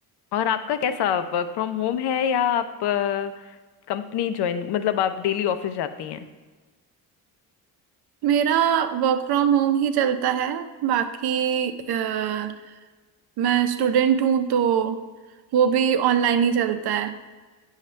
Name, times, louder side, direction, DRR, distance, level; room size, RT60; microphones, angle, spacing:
voice 1, 0.3-3.5 3.9-6.3, left 9 dB, 85° left, 10 dB, 0.7 m, -25 dB
voice 2, 8.2-12.5 13.4-15.0 15.5-17.1, right 8 dB, 75° right, 9 dB, 0.7 m, -22 dB
9.1 x 6.5 x 3.2 m, 1.3 s
cardioid pair, 180°, 38 cm